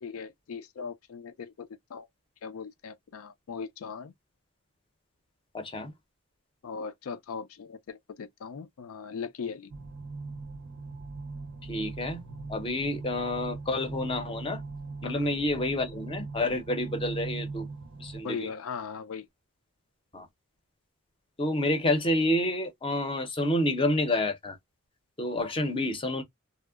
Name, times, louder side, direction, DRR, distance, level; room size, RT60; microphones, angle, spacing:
voice 1, 0.0-2.1 2.4-4.1 6.6-9.7 15.0-15.2 18.2-19.3, left 5 dB, 75° left, 0.4 m, -39 dB
voice 2, 5.5-5.9 11.6-12.2 12.5-14.6 15.0-17.7 18.0-18.5 20.1-20.3 21.4-24.6 25.2-26.2, left 1 dB, 25° left, 0.6 m, -29 dB
sound 1, 9.7-18.2, right 3 dB, 90° right, 0.5 m, -40 dB
2.7 x 2.0 x 2.3 m
head